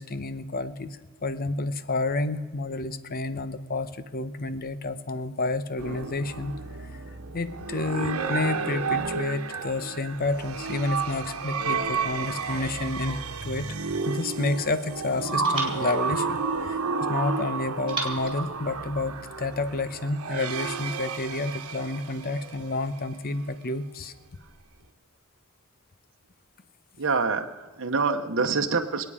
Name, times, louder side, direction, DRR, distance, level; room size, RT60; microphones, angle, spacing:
voice 1, 0.0-6.5 6.8-7.0 7.3-13.8 14.1-16.8 17.1-24.1, left 2 dB, 45° left, 12 dB, 0.8 m, -30 dB
sound 1, 5.8-23.1, right 4 dB, 90° right, 1.1 m, -31 dB
sound 2, 15.4-17.1 17.9-19.5, right 2 dB, 25° right, 2.9 m, -39 dB
voice 2, 27.0-29.1, right 4 dB, 60° right, 4 dB, 0.9 m, -26 dB
27.0 x 9.2 x 4.9 m, 1.4 s
head